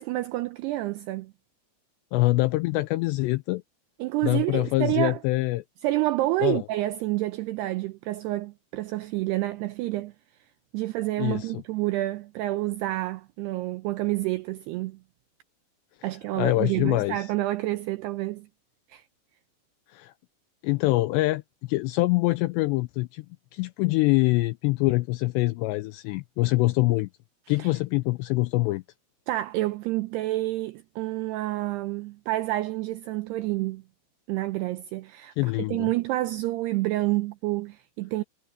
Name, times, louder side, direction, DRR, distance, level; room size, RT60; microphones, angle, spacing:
voice 1, 0.0-1.3 4.0-5.2 5.8-10.1 10.7-15.0 16.0-18.5 18.9-19.1 27.6-27.8 29.3-33.8 34.3-38.2, right 17 dB, 90° right, 2.3 m, -28 dB
voice 2, 2.1-3.6 4.2-5.6 6.4-6.6 11.2-11.5 16.3-17.2 19.9-20.1 20.6-23.3 23.5-27.1 27.5-28.8 35.4-35.9, left 20 dB, 85° left, 2.5 m, -24 dB
omnidirectional pair, 5.5 m